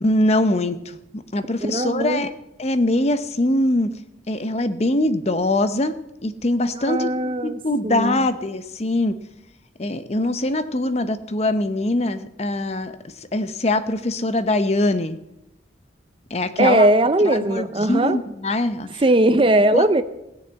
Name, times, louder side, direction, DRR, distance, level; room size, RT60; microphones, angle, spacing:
voice 1, 0.0-2.3 2.6-3.9 4.3-7.1 7.4-9.1 9.8-12.9 13.3-15.2 16.3-16.9 17.2-19.0 19.7-19.8, left 1 dB, 35° left, 11 dB, 0.7 m, -22 dB
voice 2, 1.6-2.3 6.8-8.2 16.6-18.2 19.0-20.0, right 1 dB, 30° right, 12 dB, 0.5 m, -19 dB
16.5 x 6.9 x 8.1 m, 0.90 s
head